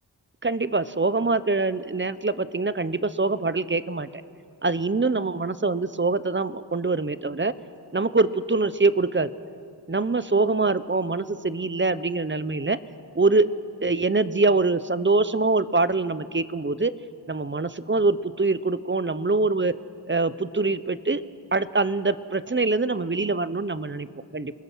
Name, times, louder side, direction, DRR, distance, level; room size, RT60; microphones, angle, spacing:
voice 1, 0.4-4.1 4.6-7.5 7.9-9.3 9.9-12.8 13.1-13.5 13.8-16.9 17.3-19.7 20.1-21.2 21.5-24.1 24.3-24.5, right 3 dB, 25° right, 15 dB, 0.8 m, -24 dB
27.5 x 20.5 x 6.2 m, 2.4 s
wide cardioid pair, 55°, 43 cm